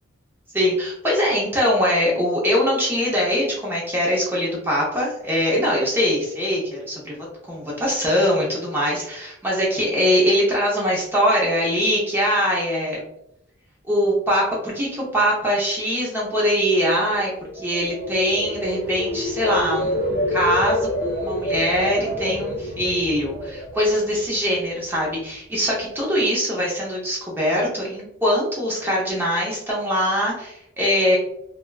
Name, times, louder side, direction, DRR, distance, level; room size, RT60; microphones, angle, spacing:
voice 1, 0.5-7.2 7.4-13.0 13.9-20.0 20.3-31.2, equal, 10° right, -5 dB, 0.6 m, -22 dB
sound 1, 17.3-24.5 24.9-25.3, left 1 dB, 45° left, 0.8 m, -27 dB
2.8 x 2.2 x 2.3 m, 0.79 s
head